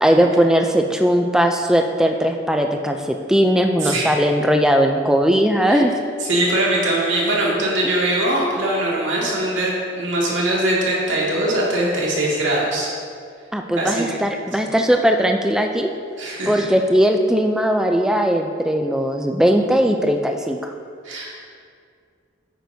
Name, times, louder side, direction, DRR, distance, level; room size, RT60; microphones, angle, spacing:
voice 1, 0.0-5.9 13.5-15.9 16.5-20.7, equal, 5° right, 4 dB, 0.3 m, -18 dB
voice 2, 3.8-4.1 5.7-5.8 6.2-12.9 13.8-14.0 16.2-16.6 21.0-21.3, right 1 dB, 90° right, -5 dB, 2.1 m, -21 dB
9.3 x 8.9 x 2.7 m, 2.2 s
head